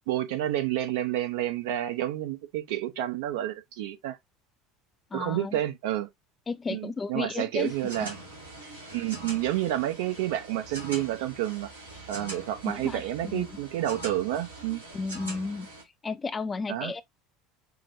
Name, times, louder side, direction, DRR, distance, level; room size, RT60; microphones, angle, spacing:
voice 1, 0.1-4.2 5.1-6.1 6.7-8.1 8.9-11.7 12.1-14.8 16.7-16.9, right 13 dB, 65° right, 0.8 m, -29 dB
voice 2, 5.1-5.6 6.5-8.1 12.6-13.5 14.9-15.7 16.0-17.0, left 4 dB, 25° left, 0.5 m, -33 dB
sound 1, 7.6-15.8, right 2 dB, 85° right, 2.0 m, -43 dB
5.9 x 2.1 x 2.7 m
figure-of-eight pair, 65°, 0 cm